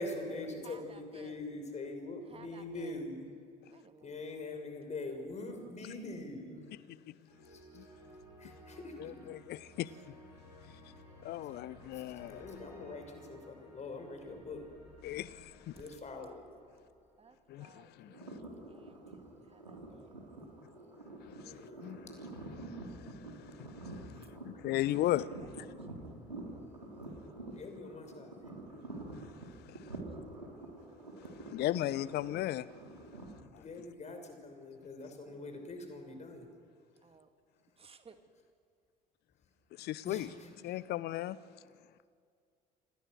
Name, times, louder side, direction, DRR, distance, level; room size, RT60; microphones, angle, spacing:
voice 1, 0.0-3.3 4.0-6.6 7.5-7.6 8.4-8.9 12.3-14.6 15.7-16.4 21.4-21.9 27.5-28.3 33.6-36.5 40.0-40.3, left 2 dB, 35° left, 5.9 m, -43 dB
voice 2, 0.6-1.4 2.3-3.0 3.7-4.2 17.2-20.2 24.2-24.3 25.4-25.8 26.0-26.5 29.7-30.5 35.3-35.6 37.0-37.3 37.8-38.2, right 5 dB, 25° right, 2.3 m, -60 dB
sound 1, 7.3-17.3, equal, 90° left, 7.2 m, -56 dB
voice 3, 9.0-10.1 10.7-10.8 11.2-12.5 15.0-15.8 17.5-18.3 21.2-25.7 29.2-30.0 31.2-32.7 33.8-33.9 39.8-40.3 40.6-41.4, left 14 dB, 50° left, 0.8 m, -38 dB
Pepper mill, 18.1-33.3, right 2 dB, 90° right, 3.7 m, -47 dB
29.5 x 27.5 x 6.5 m
figure-of-eight pair, 55°, 21 cm